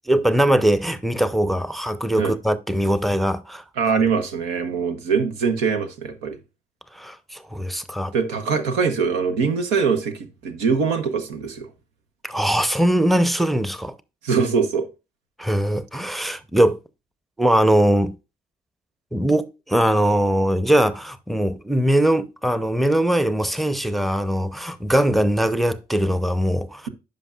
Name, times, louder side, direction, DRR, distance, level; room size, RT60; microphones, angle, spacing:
voice 1, 0.1-4.0 6.9-8.1 12.2-13.9 15.4-16.8 17.4-18.1 19.1-26.9, right 1 dB, ahead, 0.6 m, -21 dB
voice 2, 3.8-6.4 8.1-11.7 14.2-14.9 16.1-16.3, right 5 dB, 90° right, 0.8 m, -23 dB
10.0 x 5.3 x 2.4 m
supercardioid pair, 50°, 18 cm